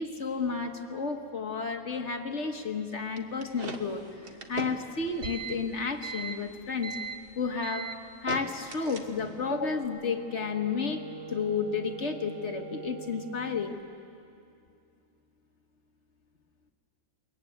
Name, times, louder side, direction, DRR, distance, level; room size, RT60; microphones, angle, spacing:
voice 1, 0.0-4.0 4.5-6.9 7.4-7.9 8.2-11.0 11.3-13.8, left 5 dB, 40° left, 5 dB, 1.3 m, -32 dB
sound 1, 3.2-9.4, right 4 dB, 30° right, 1.2 m, -39 dB
Wind instrument woodwind instrument, 9.1-13.6, right 5 dB, 55° right, 1.9 m, -44 dB
22.5 x 21.5 x 9.1 m, 2.5 s
omnidirectional pair, 2.3 m